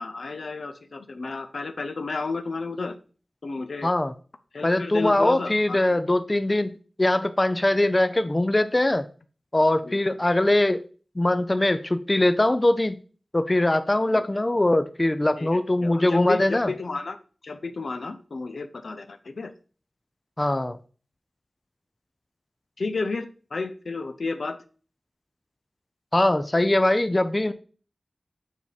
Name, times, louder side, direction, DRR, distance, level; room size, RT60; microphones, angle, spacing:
voice 1, 0.0-3.0 3.4-3.9 4.5-6.0 9.8-10.0 14.1-14.2 15.4-17.2 17.4-19.5 22.8-24.6, left 3 dB, 80° left, 9 dB, 0.6 m, -32 dB
voice 2, 3.8-4.1 4.6-9.1 9.5-10.8 11.2-13.0 13.3-16.7 20.4-20.8 26.1-27.5, left 1 dB, 25° left, 11 dB, 0.4 m, -22 dB
7.2 x 3.5 x 4.1 m, 0.39 s
wide cardioid pair, 75°, 0 cm